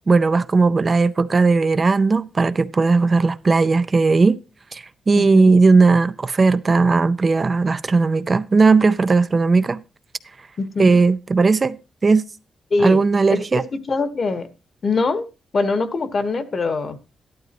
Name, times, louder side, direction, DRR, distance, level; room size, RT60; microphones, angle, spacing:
voice 1, 0.1-4.4 4.7-9.8 10.8-11.8 12.0-12.3 12.8-13.6, right 4 dB, 35° right, 0.5 m, -17 dB
voice 2, 5.1-5.5 10.6-11.0 12.7-13.0 13.3-14.5 14.8-15.2 15.5-17.0, left 3 dB, 45° left, 1.4 m, -23 dB
13.5 x 12.0 x 3.0 m
cardioid pair, 105°, 0 cm